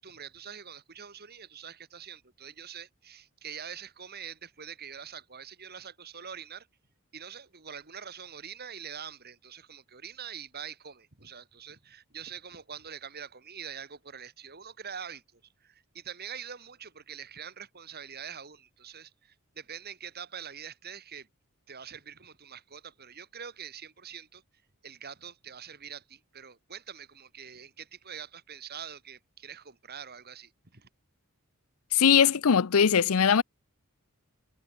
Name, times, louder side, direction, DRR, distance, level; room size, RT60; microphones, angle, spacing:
voice 1, 0.0-6.7 7.1-21.3 21.7-24.4 24.8-30.9, right 7 dB, 45° right, 3.0 m, -44 dB
voice 2, 31.9-33.4, left 7 dB, 75° left, 0.6 m, -21 dB
head